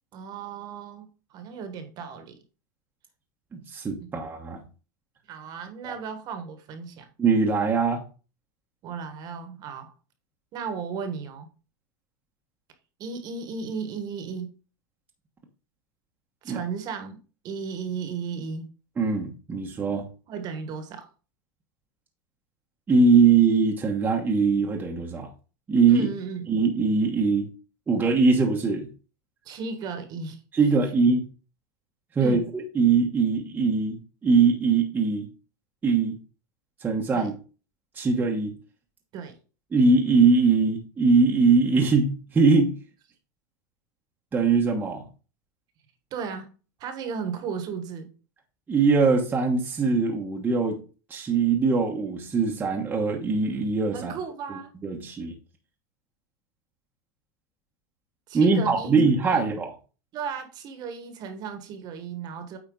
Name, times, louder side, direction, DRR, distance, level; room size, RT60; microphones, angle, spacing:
voice 1, 0.1-2.3 4.0-4.1 5.3-7.1 8.8-9.9 10.5-11.5 13.0-14.5 16.4-17.2 17.4-18.7 20.3-21.1 25.9-26.5 29.4-30.4 32.2-32.5 37.1-37.3 39.1-39.3 46.1-46.5 46.8-48.1 53.9-54.7 58.3-58.9 59.3-59.5 60.1-62.6, right 6 dB, 40° right, 1.4 m, -35 dB
voice 2, 3.5-4.6 7.2-8.0 16.5-16.6 19.0-20.0 22.9-25.3 25.7-26.1 26.5-27.5 27.9-28.9 30.6-31.2 32.2-35.3 35.8-36.2 36.8-37.3 38.0-38.5 39.7-42.8 44.3-45.1 48.7-50.8 51.1-54.1 54.8-55.3 58.3-59.7, right 4 dB, 15° right, 1.1 m, -22 dB
8.6 x 4.4 x 3.8 m
supercardioid pair, 140°, 10 cm